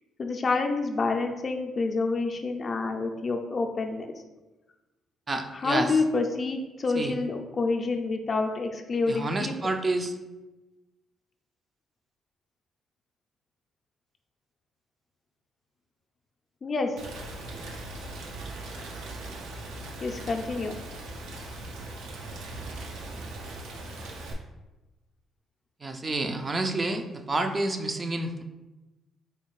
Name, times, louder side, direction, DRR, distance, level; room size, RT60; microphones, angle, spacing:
voice 1, 0.2-4.1 5.5-9.5 16.6-16.9 20.0-20.8, left 3 dB, 40° left, 4 dB, 0.4 m, -28 dB
voice 2, 5.3-5.9 7.0-7.1 9.1-10.1 25.8-28.4, right 2 dB, 25° right, 6 dB, 0.3 m, -29 dB
Rain, 17.0-24.3, right 2 dB, 90° right, 0.5 m, -39 dB
4.2 x 2.3 x 3.1 m, 1.1 s
cardioid pair, 90°, 0 cm